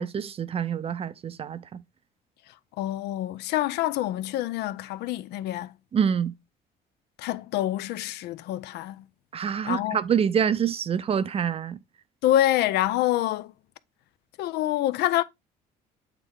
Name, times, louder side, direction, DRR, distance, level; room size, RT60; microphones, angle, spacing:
voice 1, 0.0-1.8 5.9-6.3 9.3-11.8, right 8 dB, 35° right, 0.5 m, -26 dB
voice 2, 2.5-5.7 7.2-9.1 9.6-10.0 12.2-13.5 14.4-15.2, left 13 dB, 80° left, 0.5 m, -26 dB
8.1 x 3.2 x 3.6 m
cardioid pair, 110°, 17 cm